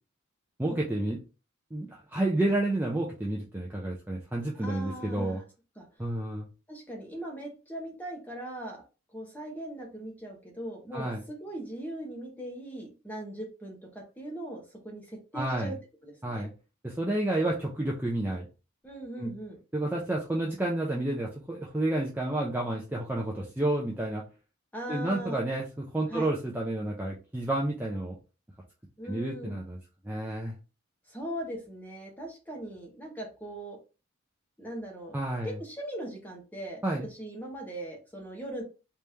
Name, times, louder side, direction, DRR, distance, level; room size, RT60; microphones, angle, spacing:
voice 1, 0.6-1.2 1.7-5.4 6.0-6.5 10.9-11.2 15.3-15.7 16.2-16.5 16.8-18.5 19.2-19.3 19.7-24.2 24.9-28.2 29.1-29.8 30.0-30.5 35.1-35.6 36.8-37.1, right 1 dB, 10° right, -2 dB, 0.5 m, -30 dB
voice 2, 4.6-5.4 5.8-5.9 6.7-8.8 9.1-15.8 16.0-16.5 18.8-19.6 24.7-25.4 26.1-26.3 29.0-29.6 31.1-33.8 34.6-35.2 35.4-36.8 37.1-38.6, right 1 dB, 10° left, 0 dB, 1.0 m, -40 dB
3.4 x 3.2 x 2.8 m, 0.33 s
head